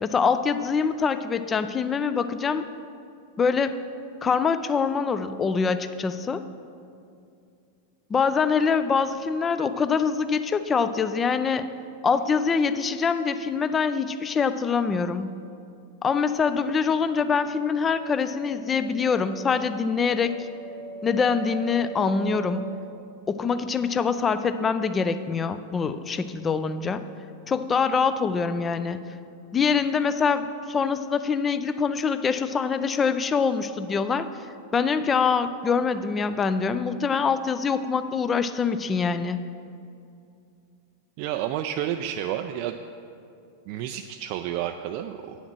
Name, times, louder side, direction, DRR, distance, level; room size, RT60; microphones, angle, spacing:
voice 1, 0.0-2.7 3.4-3.8 4.2-6.4 8.1-11.7 12.0-15.3 16.0-20.3 21.0-22.7 23.3-27.0 27.5-29.0 29.5-34.3 34.7-39.4, left 5 dB, 20° left, 11 dB, 0.4 m, -24 dB
sound 1, 16.3-22.7, right 2 dB, 50° left, 1.9 m, -41 dB
voice 2, 41.2-42.8 43.7-45.4, right 11 dB, 45° right, 6 dB, 0.3 m, -30 dB
8.9 x 7.2 x 6.1 m, 2.5 s
figure-of-eight pair, 90°, 0 cm